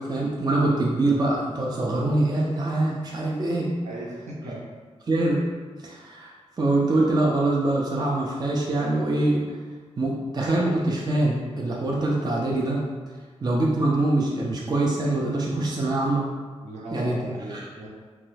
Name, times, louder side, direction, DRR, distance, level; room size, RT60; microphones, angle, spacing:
voice 1, 0.0-3.7 5.1-5.4 5.8-6.3 6.6-9.4 10.0-12.8 13.4-16.3 16.9-17.2 17.5-17.7, right 2 dB, 35° right, -3 dB, 0.4 m, -24 dB
voice 2, 3.8-4.6 16.6-17.9, right 1 dB, 70° right, -4 dB, 0.7 m, -36 dB
2.9 x 2.2 x 3.2 m, 1.5 s
wide cardioid pair, 95°, 12 cm